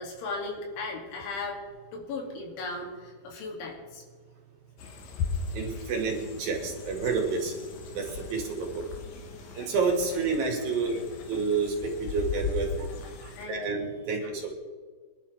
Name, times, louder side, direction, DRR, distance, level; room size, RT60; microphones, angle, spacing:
voice 1, 0.0-1.6 1.9-4.0 13.3-13.9 14.2-14.5, left 3 dB, 80° left, 0 dB, 5.0 m, -37 dB
sound 1, 4.8-13.5, left 5 dB, 65° left, 2.4 m, -38 dB
voice 2, 5.5-7.5 8.0-8.1 8.3-8.8 9.6-11.0 11.3-12.9 13.5-14.3, right 4 dB, 60° right, 0 dB, 3.6 m, -29 dB
25.5 x 11.5 x 3.5 m, 1.5 s
omnidirectional pair, 5.3 m